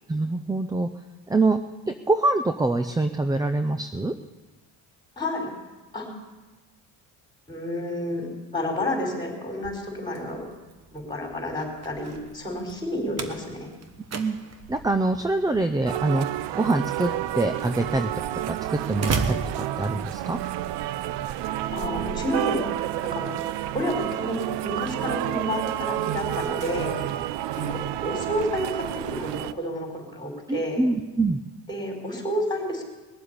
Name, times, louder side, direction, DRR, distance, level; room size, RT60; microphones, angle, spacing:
voice 1, 0.1-0.9 1.3-1.6 1.9-4.1 14.1-14.4 14.7-16.3 16.5-18.1 18.5-20.4 30.5-31.4, right 2 dB, 10° right, 9 dB, 0.5 m, -25 dB
voice 2, 5.2-5.5 5.9-6.1 7.5-8.3 8.5-10.5 10.9-13.7 21.7-22.6 23.1-23.3 23.7-27.0 27.7-30.8 31.7-32.8, left 1 dB, 10° left, 1 dB, 4.8 m, -30 dB
Slam, 9.5-20.4, right 4 dB, 40° right, 1.2 m, -37 dB
sound 1, 15.9-29.5, right 13 dB, 80° right, 0.6 m, -30 dB
20.5 x 7.6 x 8.3 m, 1.2 s
cardioid pair, 120°, 41 cm